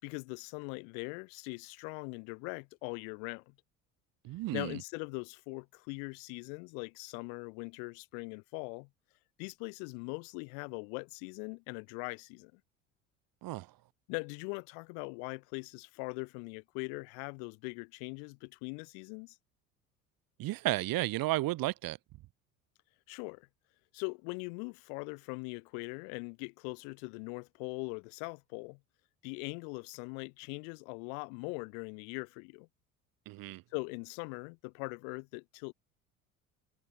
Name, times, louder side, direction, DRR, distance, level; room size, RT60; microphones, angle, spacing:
voice 1, 0.0-3.5 4.5-8.9 9.4-12.6 14.1-19.4 23.1-23.5 23.9-28.8 29.2-32.7 33.7-35.7, left 40 dB or more, 65° left, 7.6 m, -41 dB
voice 2, 4.2-4.8 13.4-13.7 20.4-22.0 33.3-33.6, right 18 dB, 55° right, 2.6 m, -33 dB
figure-of-eight pair, 60°, 42 cm